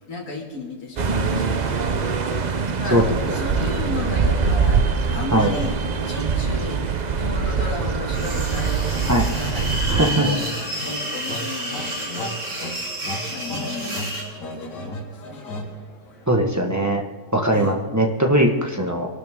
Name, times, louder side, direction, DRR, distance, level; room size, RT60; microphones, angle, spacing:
voice 1, 0.0-2.0 2.8-5.7 6.0-6.8 7.1-10.5 10.8-12.7 13.2-14.1 14.4-15.5 17.5-17.8, left 2 dB, 55° left, -3 dB, 2.9 m, -34 dB
sound 1, 1.0-10.0, right 5 dB, 65° right, 0.4 m, -23 dB
sound 2, 8.1-14.3, right 1 dB, 45° right, 3.0 m, -30 dB
sound 3, 9.9-16.4, left 1 dB, 80° left, 2.4 m, -35 dB
voice 2, 9.9-10.3 16.3-17.0 17.3-19.1, right 1 dB, 10° right, 1 dB, 1.1 m, -19 dB
23.0 x 12.0 x 3.7 m, 1.5 s
omnidirectional pair, 1.8 m